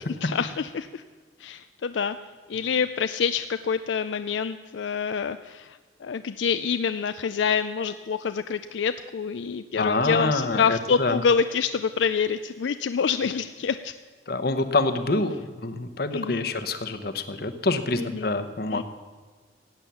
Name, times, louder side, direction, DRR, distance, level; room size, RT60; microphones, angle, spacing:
voice 1, 0.2-1.0 1.4-2.2 2.5-13.9 16.1-16.5 18.0-18.3 18.7-18.8, left 6 dB, 85° left, 11 dB, 0.4 m, -27 dB
voice 2, 9.7-11.2 14.3-18.8, left 2 dB, 55° left, 10 dB, 1.0 m, -26 dB
16.5 x 9.0 x 7.0 m, 1.4 s
head